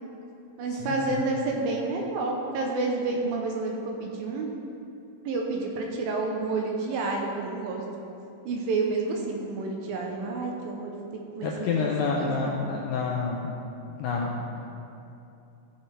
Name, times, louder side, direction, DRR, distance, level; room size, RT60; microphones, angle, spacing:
voice 1, 0.6-4.5 5.3-7.8 8.5-10.9 11.4-11.5 11.8-12.6, right 3 dB, 75° right, 0 dB, 2.5 m, -29 dB
voice 2, 11.4-13.5 14.0-14.6, left 4 dB, 80° left, -1 dB, 2.0 m, -28 dB
14.5 x 6.7 x 3.4 m, 2.8 s
omnidirectional pair, 4.5 m